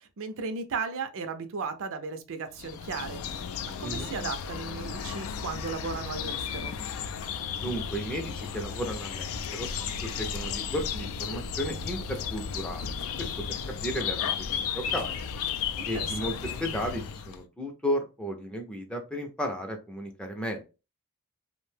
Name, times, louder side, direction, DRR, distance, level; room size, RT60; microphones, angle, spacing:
voice 1, 0.0-3.5 3.8-6.7 15.8-16.3, right 5 dB, 60° right, 0.5 m, -36 dB
sound 1, 2.6-17.4, left 7 dB, 65° left, 0.3 m, -34 dB
voice 2, 7.6-9.7 10.0-15.2 15.8-20.6, equal, 5° left, 0.4 m, -34 dB
2.5 x 2.1 x 3.2 m
head